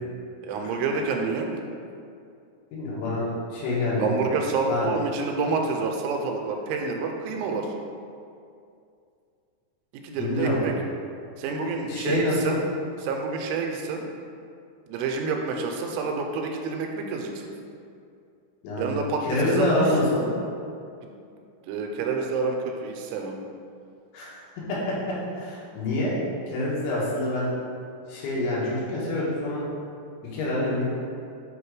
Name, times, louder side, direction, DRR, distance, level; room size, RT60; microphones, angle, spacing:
voice 1, 0.4-1.5 4.0-7.7 9.9-10.7 11.4-12.6 13.0-14.0 14.9-17.5 18.8-19.9 21.0-21.1 21.6-23.4, right 4 dB, 90° right, 2 dB, 3.1 m, -28 dB
voice 2, 2.7-4.1 4.7-4.9 10.2-10.6 11.9-12.5 18.6-18.9 19.2-20.2 24.1-24.3 24.7-24.8 25.4-26.1 26.5-27.5 28.1-29.6 30.3-30.8, left 1 dB, 75° left, -7 dB, 3.4 m, -26 dB
7.8 x 2.9 x 4.7 m, 2.4 s
omnidirectional pair, 5.6 m